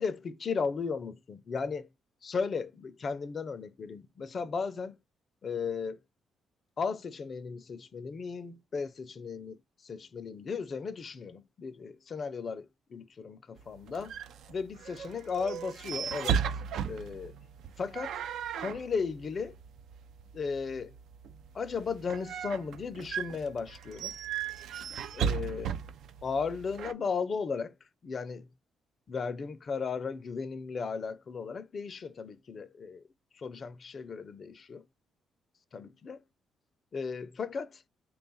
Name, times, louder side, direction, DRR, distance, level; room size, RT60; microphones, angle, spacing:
voice 1, 0.0-1.9 2.2-5.0 5.4-6.0 6.8-14.1 14.5-16.4 16.8-17.3 17.8-18.2 18.6-19.6 20.3-20.9 21.5-24.1 25.1-25.7 26.2-27.7 28.0-28.5 29.1-33.0 33.3-34.8 35.7-36.2 36.9-37.8, left 5 dB, 45° left, 0.4 m, -35 dB
sound 1, 13.6-26.9, right 8 dB, 75° right, 0.3 m, -37 dB
3.5 x 2.3 x 3.9 m
cardioid pair, 90°, 0 cm